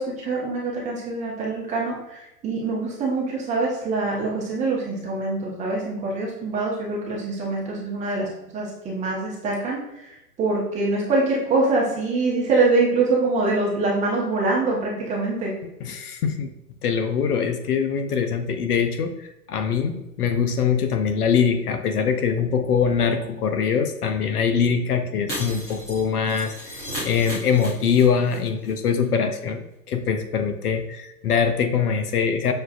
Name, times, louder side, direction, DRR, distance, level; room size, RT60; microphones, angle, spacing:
voice 1, 0.0-9.8 10.4-15.5, right 3 dB, 15° right, -4 dB, 0.8 m, -24 dB
voice 2, 15.8-16.5 16.8-32.5, left 6 dB, 65° left, 7 dB, 0.7 m, -23 dB
Shatter, 25.3-28.4 28.6-28.7 29.0-29.1, equal, 5° left, 0.4 m, -34 dB
6.6 x 2.4 x 2.4 m, 0.88 s
hypercardioid pair, 120°, 49 cm